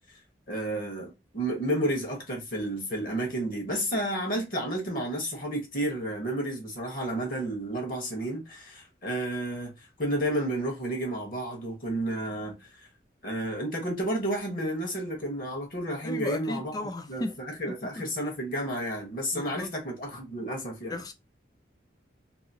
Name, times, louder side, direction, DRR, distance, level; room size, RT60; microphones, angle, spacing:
voice 1, 0.5-12.7 13.2-16.7 17.1-21.0, right 1 dB, 50° left, 1.1 m, -31 dB
voice 2, 16.0-17.4 17.7-18.1 19.3-19.7 20.9-21.1, left 2 dB, 20° left, 0.3 m, -35 dB
2.8 x 2.8 x 2.7 m
head